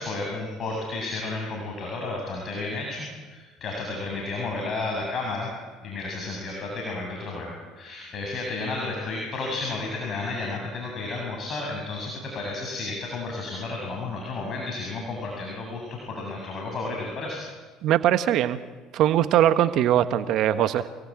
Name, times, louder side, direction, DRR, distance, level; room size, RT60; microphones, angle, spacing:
voice 1, 0.0-5.5 5.8-17.4, left 3 dB, 45° left, 0 dB, 7.4 m, -32 dB
voice 2, 17.8-18.6 18.9-20.8, right 11 dB, 65° right, 10 dB, 1.3 m, -21 dB
29.0 x 19.0 x 8.8 m, 1.3 s
hypercardioid pair, 75°, 0 cm